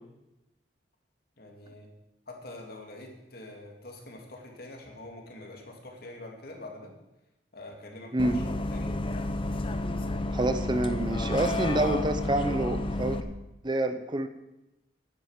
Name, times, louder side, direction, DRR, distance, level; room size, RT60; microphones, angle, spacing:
voice 1, 1.4-1.9 2.3-6.9 7.5-8.4 8.7-9.0, left 2 dB, 60° left, 2 dB, 2.5 m, -45 dB
Bus, 8.2-13.2, left 2 dB, 30° left, 0.7 m, -31 dB
voice 2, 10.3-13.2 13.6-14.3, right 1 dB, 25° right, 9 dB, 0.7 m, -27 dB
10.0 x 9.0 x 7.4 m, 0.97 s
head